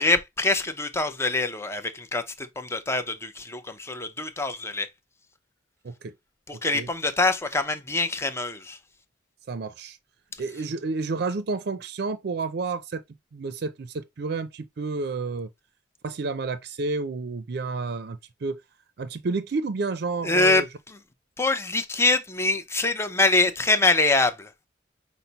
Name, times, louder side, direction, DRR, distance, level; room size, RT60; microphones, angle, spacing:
voice 1, 0.0-4.9 6.5-8.8 10.3-10.4 20.2-21.0 21.4-24.7, left 2 dB, 15° left, 0.5 m, -24 dB
voice 2, 9.5-10.0 10.4-13.0 13.3-15.5 16.0-18.6 19.0-20.7, right 3 dB, 60° right, 0.4 m, -30 dB
5.8 x 2.0 x 3.9 m
head